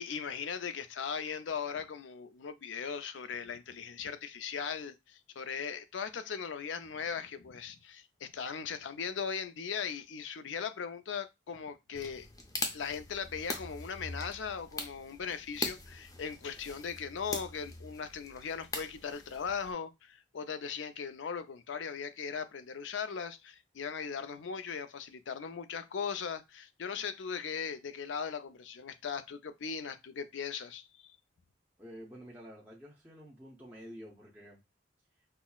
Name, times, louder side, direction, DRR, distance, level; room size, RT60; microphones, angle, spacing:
voice 1, 0.0-12.3 12.7-31.1, left 6 dB, 85° left, 0.5 m, -39 dB
sound 1, 11.9-19.7, left 2 dB, 20° left, 0.5 m, -42 dB
voice 2, 31.8-34.6, equal, 10° right, 0.8 m, -49 dB
5.6 x 2.0 x 2.3 m
head